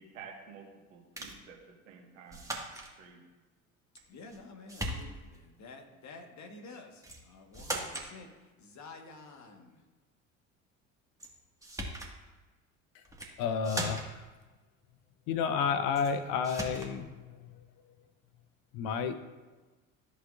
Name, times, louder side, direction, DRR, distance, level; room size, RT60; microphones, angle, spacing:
voice 1, 0.0-2.6 3.0-3.4, right 6 dB, 75° right, 1 dB, 1.7 m, -51 dB
sound 1, 1.2-1.4 2.3-2.9 4.0-4.4 4.7-5.4 7.0-7.2 7.5-8.1 11.2-11.3 11.6-12.1 13.0-13.3 13.6-14.2 16.0-16.1 16.4-16.9, right 1 dB, 10° right, 1.9 m, -38 dB
voice 2, 4.1-6.9 7.3-8.3 8.6-9.7, left 3 dB, 45° left, 3 dB, 1.6 m, -50 dB
voice 3, 13.4-14.3 15.3-17.6 18.7-19.2, left 6 dB, 60° left, 10 dB, 0.8 m, -31 dB
14.0 x 6.5 x 2.6 m, 1.2 s
figure-of-eight pair, 60°, 40 cm